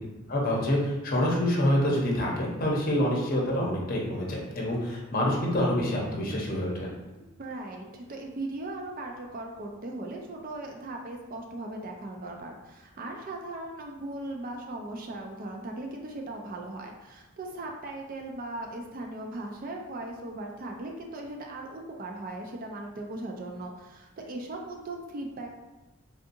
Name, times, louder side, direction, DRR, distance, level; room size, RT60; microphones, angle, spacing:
voice 1, 0.3-6.9, left 1 dB, 40° left, -3 dB, 0.7 m, -27 dB
voice 2, 7.4-25.6, right 2 dB, 40° right, 2 dB, 0.4 m, -38 dB
3.5 x 2.6 x 2.6 m, 1.1 s
head